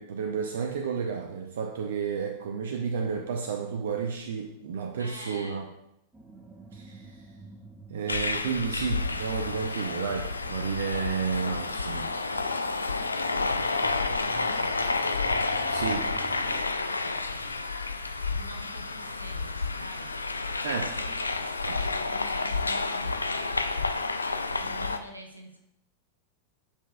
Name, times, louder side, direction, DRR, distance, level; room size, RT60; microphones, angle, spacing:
voice 1, 0.0-5.6 6.7-7.1 7.9-12.1 15.7-16.1 20.6-20.9 21.6-21.8, right 6 dB, 60° right, 3 dB, 0.6 m, -31 dB
voice 2, 5.0-5.7 12.9-13.4 13.9-15.0 17.0-17.6 18.3-20.1 20.8-23.7 24.5-25.6, right 1 dB, 85° right, 3 dB, 0.9 m, -46 dB
sound 1, 6.1-16.6, right 2 dB, 10° right, 0.7 m, -49 dB
sound 2, 8.1-25.0, left 3 dB, 80° left, 0.3 m, -30 dB
8.4 x 5.1 x 2.3 m, 0.79 s
figure-of-eight pair, 90°, 0 cm